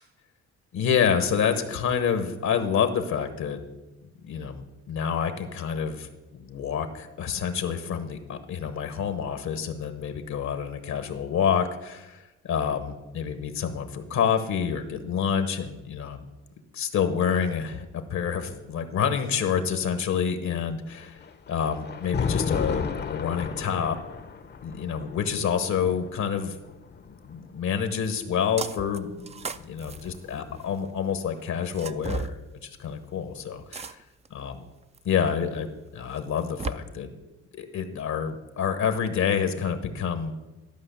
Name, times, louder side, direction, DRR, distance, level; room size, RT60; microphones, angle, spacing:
voice 1, 0.7-3.6 4.3-16.2 16.7-21.2 21.5-24.0 24.6-26.6 27.0-32.3 32.6-34.0 34.3-34.7 35.0-37.1 37.6-40.3, left 7 dB, 70° left, 8 dB, 1.1 m, -28 dB
Thunder, 20.9-28.1 29.2-30.9, left 5 dB, 35° left, 0.7 m, -34 dB
sound 1, 28.6-29.0 29.3-30.8 31.7-32.3 33.7-34.3 34.9-35.0 36.2-36.7, right 4 dB, 20° right, 0.4 m, -34 dB
12.5 x 5.4 x 6.7 m, 1.1 s
cardioid pair, 90°, 30 cm